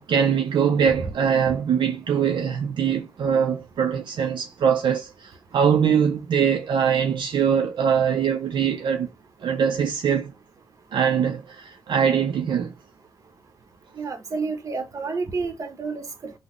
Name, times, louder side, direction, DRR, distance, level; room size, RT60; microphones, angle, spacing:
voice 1, 0.0-9.1 9.4-10.3 10.9-12.7, right 7 dB, 60° right, 0.4 m, -22 dB
voice 2, 14.0-16.3, right 4 dB, 35° right, 0.8 m, -30 dB
3.9 x 2.1 x 3.0 m
cardioid pair, 100°, 9 cm